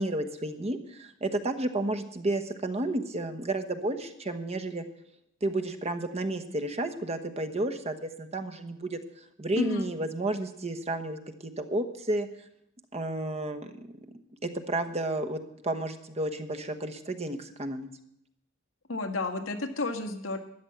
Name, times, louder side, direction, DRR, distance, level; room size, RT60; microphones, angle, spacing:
voice 1, 0.0-4.8 5.4-9.0 9.4-12.3 12.9-13.9 14.4-17.9, right 2 dB, 30° right, 7 dB, 1.1 m, -32 dB
voice 2, 9.5-9.9 18.9-20.4, left 3 dB, 85° left, 5 dB, 1.7 m, -31 dB
13.0 x 10.0 x 7.9 m, 0.78 s
head